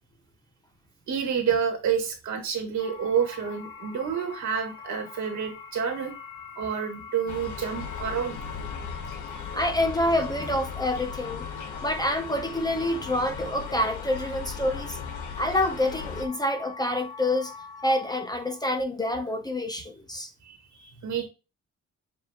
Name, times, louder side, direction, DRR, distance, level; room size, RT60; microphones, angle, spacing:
voice 1, 1.1-6.1 6.6-8.4 9.3-9.4 20.4-21.3, right 7 dB, 70° right, 1.7 m, -29 dB
sound 1, 2.8-18.7, left 5 dB, 35° left, 2.0 m, -44 dB
sound 2, 7.3-16.3, left 6 dB, 70° left, 1.0 m, -37 dB
voice 2, 9.5-11.4 11.8-15.0 15.4-17.5 17.8-20.3, left 1 dB, 15° left, 0.6 m, -27 dB
7.0 x 2.7 x 2.8 m
cardioid pair, 90°, 30 cm